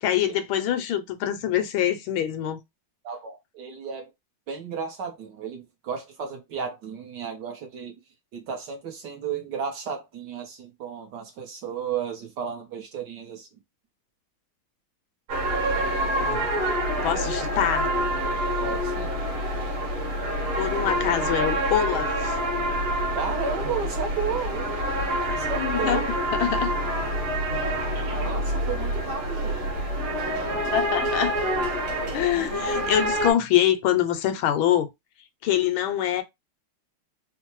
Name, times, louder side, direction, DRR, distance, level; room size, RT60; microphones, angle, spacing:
voice 1, 0.0-2.6 16.2-16.5 17.0-17.9 20.5-22.4 25.6-26.0 26.3-26.7 30.6-31.4 32.1-34.9 35.4-36.2, left 11 dB, 80° left, 1.3 m, -24 dB
voice 2, 3.0-4.1 4.5-7.9 8.3-13.5 18.6-19.1 23.1-24.7 25.2-26.1 27.5-29.6, right 6 dB, 65° right, 1.2 m, -33 dB
sound 1, 15.3-33.3, right 1 dB, 90° right, 2.0 m, -27 dB
4.4 x 2.0 x 3.0 m
omnidirectional pair, 2.3 m